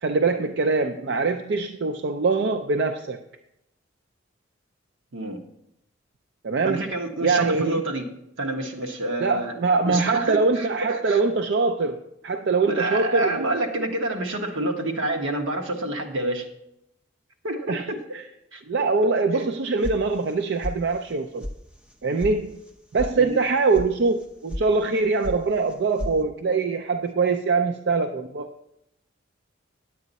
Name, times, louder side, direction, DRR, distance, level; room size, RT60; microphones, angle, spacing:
voice 1, 0.0-3.2 6.4-6.9 7.2-7.8 9.2-13.6 17.7-17.9 18.1-18.2 18.7-21.5 22.0-22.6 22.9-28.5, right 4 dB, 60° right, 6 dB, 0.4 m, -23 dB
voice 2, 6.6-8.0 8.4-9.5 9.8-11.2 12.7-16.4 17.4-17.7 18.5-18.6 23.2-23.4, right 1 dB, 80° right, 3 dB, 1.2 m, -28 dB
sound 1, 19.8-20.4 20.6-21.1 21.4-21.5 21.9-22.3 22.6-23.1 23.4-23.9 24.2-24.6 24.9-25.4 25.7-26.2, left 1 dB, 5° right, 0.7 m, -32 dB
9.8 x 8.4 x 4.1 m, 0.82 s
head